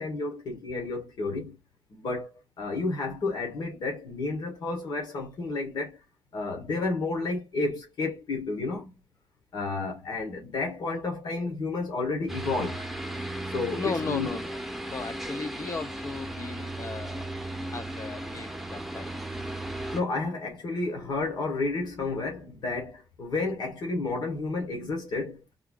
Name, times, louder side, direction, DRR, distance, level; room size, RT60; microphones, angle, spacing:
voice 1, 0.0-1.6 1.9-6.0 6.3-8.9 9.5-12.8 13.5-14.3 19.9-25.6, left 3 dB, 75° left, 1.6 m, -31 dB
sound 1, 12.3-20.0, right 1 dB, 5° right, 0.8 m, -36 dB
voice 2, 13.7-14.6 14.9-17.3 17.7-19.1, left 4 dB, 45° left, 0.7 m, -36 dB
3.6 x 2.0 x 3.7 m
cardioid pair, 75°, 7 cm